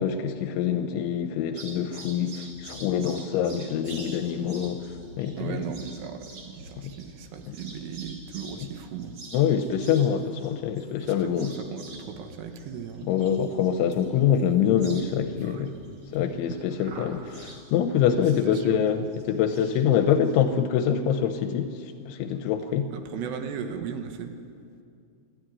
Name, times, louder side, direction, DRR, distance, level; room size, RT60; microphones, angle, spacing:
voice 1, 0.0-4.9 5.2-5.6 6.8-7.0 7.5-7.6 9.3-11.5 13.1-15.8 16.1-22.9, left 8 dB, 85° left, 8 dB, 3.0 m, -25 dB
sound 1, 1.6-20.4, right 2 dB, 40° right, 3.0 m, -47 dB
voice 2, 5.4-9.2 11.0-13.1 15.4-15.6 16.5-16.6 18.1-18.8 22.9-24.3, right 7 dB, 70° right, 6 dB, 3.1 m, -37 dB
24.5 x 12.5 x 9.7 m, 2.4 s
omnidirectional pair, 5.7 m